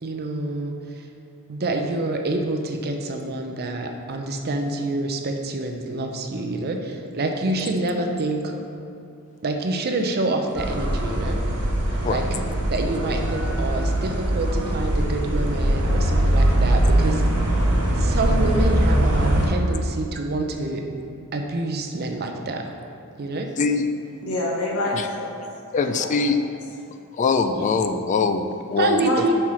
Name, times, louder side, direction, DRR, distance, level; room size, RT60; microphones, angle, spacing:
voice 1, 0.0-1.1 1.5-8.5 9.4-11.4 12.1-12.4 12.7-17.2 18.0-20.8 21.3-22.7 23.2-23.5 27.6-27.7 28.8-29.3, right 2 dB, 45° right, 4 dB, 0.6 m, -27 dB
sound 1, 10.5-19.5, right 1 dB, 85° right, 1.4 m, -21 dB
voice 2, 23.6-23.9 24.9-25.0 25.7-26.4 27.1-29.0, left 4 dB, 35° left, 8 dB, 0.3 m, -22 dB
voice 3, 24.2-25.4 25.8-26.1 29.0-29.3, left 1 dB, 70° left, -2 dB, 1.2 m, -26 dB
5.7 x 4.5 x 4.8 m, 2.5 s
head